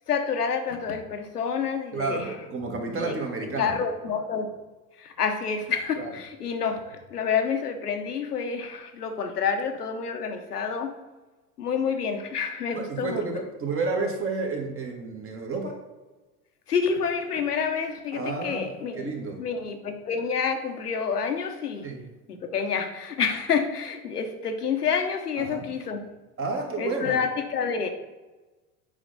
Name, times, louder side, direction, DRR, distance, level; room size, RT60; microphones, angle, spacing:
voice 1, 0.1-2.3 2.9-3.1 3.6-4.5 5.0-10.9 11.6-13.2 16.7-19.1 19.4-21.9 22.3-26.1 26.8-27.9, left 6 dB, 85° left, 6 dB, 1.0 m, -28 dB
voice 2, 1.9-3.8 6.0-6.1 12.7-15.8 18.1-19.4 21.8-22.0 25.4-25.7 26.4-27.2, right 3 dB, 30° right, 2 dB, 1.7 m, -31 dB
8.2 x 5.1 x 4.0 m, 1.2 s
hypercardioid pair, 75°, 45 cm